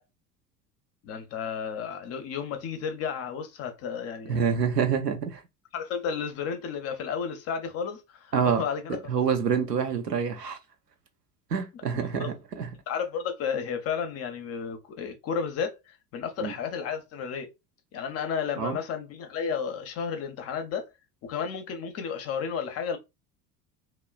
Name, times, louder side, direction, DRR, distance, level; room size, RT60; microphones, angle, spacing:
voice 1, 1.0-4.6 5.7-9.0 11.9-12.3 12.9-17.5 17.9-20.9 21.2-23.0, left 6 dB, 30° left, 0.6 m, -32 dB
voice 2, 4.3-5.4 8.3-8.6 9.1-10.6 11.5-12.7 16.4-16.5 18.6-18.8, right 7 dB, 85° right, 0.6 m, -27 dB
2.9 x 2.0 x 2.3 m
figure-of-eight pair, 70°, 47 cm